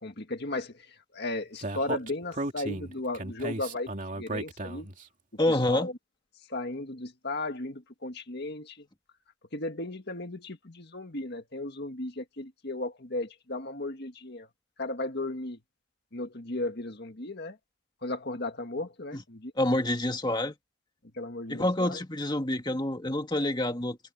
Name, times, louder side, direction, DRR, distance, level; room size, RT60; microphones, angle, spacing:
voice 1, 0.0-4.9 5.5-5.9 6.5-8.9 9.5-14.5 14.8-15.6 16.1-17.6 18.0-19.5 21.1-22.0, left 2 dB, 55° left, 1.9 m, -35 dB
Speech, 1.6-5.0, right 2 dB, 40° right, 2.9 m, -35 dB
voice 2, 5.4-5.9 19.1-19.2 19.6-20.5 21.5-24.0, left 1 dB, 20° left, 2.1 m, -27 dB
head